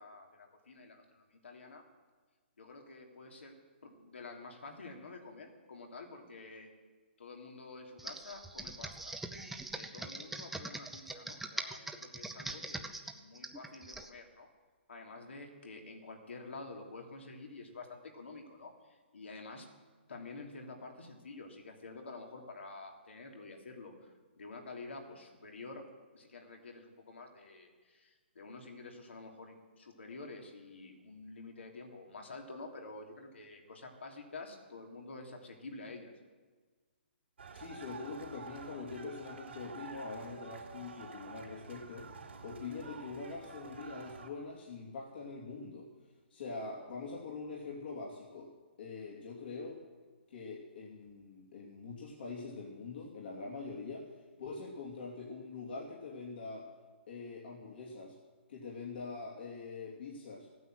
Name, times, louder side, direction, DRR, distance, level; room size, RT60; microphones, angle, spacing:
voice 1, 0.0-1.8 2.6-3.5 3.8-6.7 7.2-9.2 9.7-14.5 14.9-19.7 20.1-25.8 26.1-36.1, left 3 dB, 80° left, 1 dB, 3.0 m, -49 dB
Computer keyboard, 8.0-14.1, right 2 dB, 5° right, 0.6 m, -42 dB
sound 1, 37.4-44.3, right 4 dB, 80° right, 3.1 m, -49 dB
voice 2, 37.5-45.9 46.3-48.5 48.8-49.8 50.3-56.7 57.1-58.2 58.5-60.5, left 4 dB, 60° left, -3 dB, 2.8 m, -44 dB
15.0 x 9.4 x 7.8 m, 1.4 s
hypercardioid pair, 150°, 6 cm